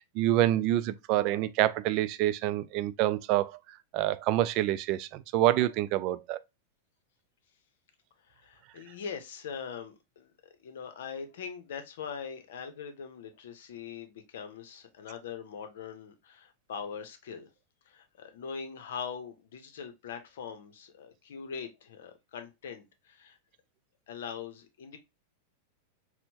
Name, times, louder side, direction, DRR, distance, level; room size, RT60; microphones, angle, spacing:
voice 1, 0.0-3.5 3.9-6.4, right 14 dB, 50° right, 0.3 m, -27 dB
voice 2, 8.2-10.3 10.6-17.5 17.9-23.4 24.1-25.0, left 6 dB, 75° left, 0.7 m, -42 dB
4.3 x 2.1 x 2.7 m
hypercardioid pair, 110°, 0 cm